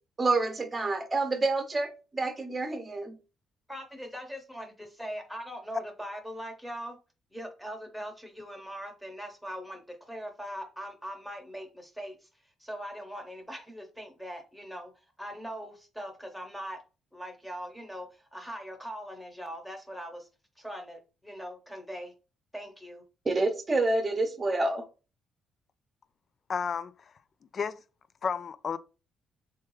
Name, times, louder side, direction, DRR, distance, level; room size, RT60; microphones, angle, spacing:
voice 1, 0.2-3.2 23.2-24.8, right 2 dB, 30° right, 1.0 m, -28 dB
voice 2, 3.7-7.0 7.3-12.3 12.6-14.9 15.2-16.8 17.1-20.3 20.6-22.1 22.5-23.0, equal, ahead, 1.2 m, -41 dB
voice 3, 26.5-27.1 27.5-27.8 28.2-28.8, left 6 dB, 50° left, 0.4 m, -32 dB
3.5 x 2.8 x 3.2 m
cardioid pair, 90°, 0 cm